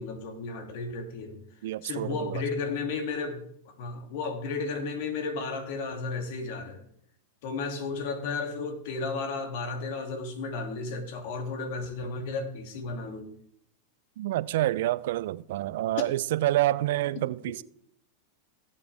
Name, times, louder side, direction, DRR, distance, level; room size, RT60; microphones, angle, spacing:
voice 1, 0.0-1.4 1.8-3.4 3.8-6.8 7.4-13.3 17.2-17.3, left 4 dB, 65° left, 2.5 m, -33 dB
voice 2, 1.6-2.4 14.2-17.6, right 15 dB, 70° right, 0.4 m, -28 dB
18.0 x 7.4 x 3.5 m
hypercardioid pair, 110°, 0 cm